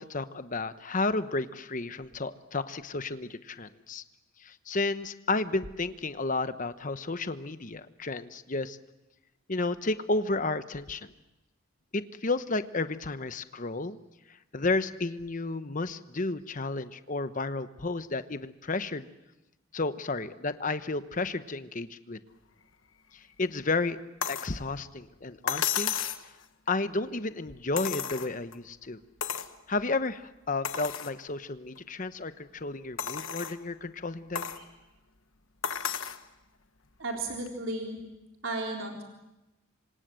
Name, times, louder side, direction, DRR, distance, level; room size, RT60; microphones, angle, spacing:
voice 1, 0.0-4.0 4.4-8.8 9.5-11.1 11.9-14.0 14.3-19.1 19.7-22.2 23.1-24.0 24.3-25.9 26.2-26.3 26.7-29.0 29.7-34.5, left 3 dB, 40° left, 12 dB, 1.0 m, -32 dB
sound 1, 24.2-24.5 25.5-26.3 27.8-28.6 29.2-29.5 30.1-30.2 30.6-31.1 31.8-31.9 33.0-33.6 34.4-34.6 35.6-36.2 37.5-37.6, left 8 dB, 80° left, 1.3 m, -32 dB
voice 2, 37.0-38.0 38.4-39.0, right 2 dB, 75° right, 1 dB, 3.9 m, -34 dB
27.0 x 25.0 x 7.7 m, 0.98 s
head